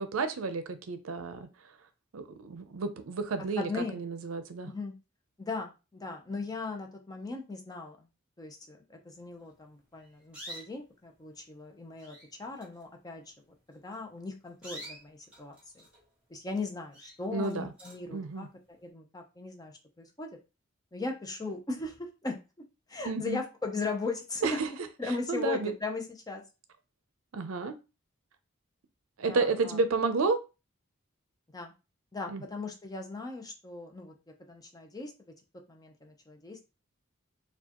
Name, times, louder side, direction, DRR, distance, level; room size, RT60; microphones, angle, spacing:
voice 1, 0.0-1.5 2.1-4.7 17.3-17.7 18.1-18.5 23.0-23.4 24.4-24.7 25.3-25.7 27.3-27.7 29.2-30.4 32.3-32.4, right 4 dB, 80° right, 10 dB, 0.5 m, -31 dB
voice 2, 3.6-4.0 4.6-4.9 5.4-8.1 8.4-13.3 13.7-15.9 16.3-18.5 18.8-20.4 20.9-22.4 22.9-24.6 25.0-26.4 29.3-29.8 31.5-31.7 32.1-34.1 34.5-35.3 35.7-36.6, left 3 dB, 20° left, 3 dB, 0.6 m, -38 dB
sound 1, 9.9-10.9 11.6-11.7 11.9-12.3 12.5-12.8 13.7-13.9 14.4-16.1 16.5-16.7 16.9-18.1, equal, 5° right, 2.1 m, -47 dB
4.5 x 2.3 x 2.9 m, 0.29 s
head